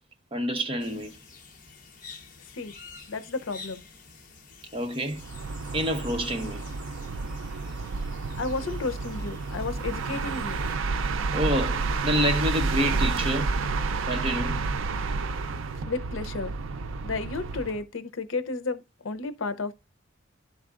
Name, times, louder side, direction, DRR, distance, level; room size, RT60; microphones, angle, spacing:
voice 1, 0.3-1.1 4.7-5.2 5.7-6.7 11.3-13.6 14.1-14.6, equal, 30° right, 0.9 m, -28 dB
sound 1, 0.8-10.8, left 4 dB, 45° left, 1.0 m, -49 dB
voice 2, 3.1-3.8 8.4-10.6 15.9-16.5 17.0-19.7, left 3 dB, 85° left, 0.7 m, -32 dB
sound 2, 5.1-17.8, right 4 dB, 90° right, 0.4 m, -30 dB
12.0 x 4.0 x 2.4 m
head